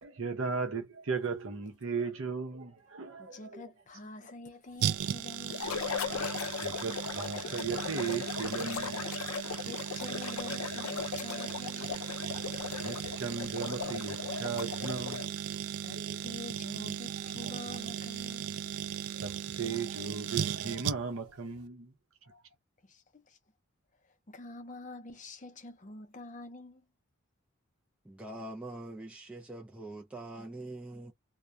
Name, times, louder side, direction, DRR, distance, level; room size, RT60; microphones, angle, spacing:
voice 1, 0.0-3.6 6.1-6.2 6.5-9.0 12.8-15.6 15.9-16.2 17.2-17.7 19.1-21.9 22.3-22.4, right 5 dB, 65° right, 0.7 m, -37 dB
voice 2, 3.2-5.8 9.6-12.0 15.8-18.6 22.8-23.4 24.3-26.9, left 2 dB, 35° left, 0.6 m, -47 dB
sound 1, 4.8-21.3 21.6-21.7, right 9 dB, 85° right, 0.3 m, -37 dB
sound 2, 5.5-15.4, left 6 dB, 80° left, 0.5 m, -38 dB
voice 3, 28.0-31.1, right 2 dB, 5° right, 0.3 m, -43 dB
2.2 x 2.2 x 2.6 m
head